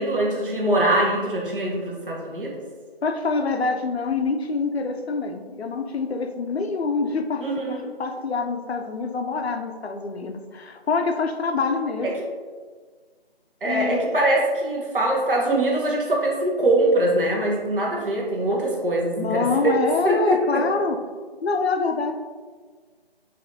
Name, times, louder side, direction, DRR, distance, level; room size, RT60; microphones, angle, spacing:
voice 1, 0.0-2.5 7.4-7.9 12.0-12.1 13.6-20.6, right 1 dB, 55° right, -2 dB, 1.0 m, -23 dB
voice 2, 3.0-12.1 13.6-14.1 19.2-21.0 21.4-22.2, left 4 dB, 80° left, 5 dB, 0.5 m, -26 dB
4.2 x 2.7 x 2.6 m, 1.5 s
figure-of-eight pair, 160°, 32 cm